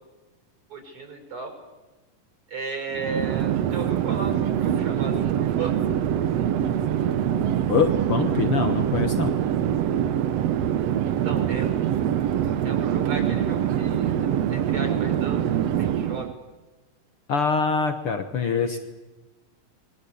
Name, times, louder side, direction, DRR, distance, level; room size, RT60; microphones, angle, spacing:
voice 1, 0.7-1.5 2.5-5.3 5.6-5.7 11.1-12.0 12.6-14.2 14.5-16.3 18.4-18.8, right 4 dB, 35° right, 3 dB, 7.4 m, -34 dB
Chatter / Fixed-wing aircraft airplane, 2.9-16.3, right 10 dB, 75° right, 1.4 m, -24 dB
sound 1, 4.5-10.7, equal, 90° left, 5.1 m, -43 dB
voice 2, 7.7-9.4 17.3-18.8, left 6 dB, 60° left, 7 dB, 1.5 m, -24 dB
26.5 x 23.0 x 8.6 m, 1.1 s
omnidirectional pair, 4.3 m